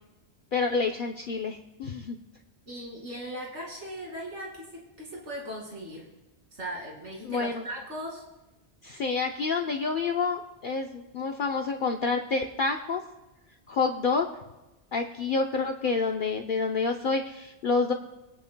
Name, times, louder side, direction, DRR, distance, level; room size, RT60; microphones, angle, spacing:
voice 1, 0.5-2.2 7.2-7.6 8.8-13.0 13.7-14.3 14.9-17.9, left 4 dB, 55° left, 3 dB, 0.8 m, -28 dB
voice 2, 2.7-6.1 6.5-8.2, equal, 85° right, -3 dB, 2.7 m, -38 dB
26.0 x 9.6 x 2.2 m, 1.1 s
omnidirectional pair, 1.2 m